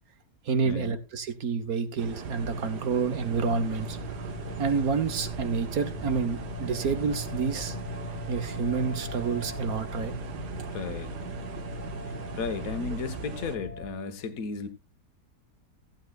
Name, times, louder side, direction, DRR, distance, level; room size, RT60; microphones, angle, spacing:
voice 1, 0.5-4.0 4.6-7.8 8.3-10.1 10.6-10.7, right 5 dB, 65° right, 1.7 m, -29 dB
sound 1, 2.0-13.6, right 5 dB, 90° right, 1.8 m, -38 dB
sound 2, 3.2-13.9, left 2 dB, 25° left, 1.5 m, -40 dB
voice 2, 10.7-11.2 12.4-14.7, left 5 dB, 60° left, 1.6 m, -34 dB
15.5 x 9.3 x 2.4 m
omnidirectional pair, 1.7 m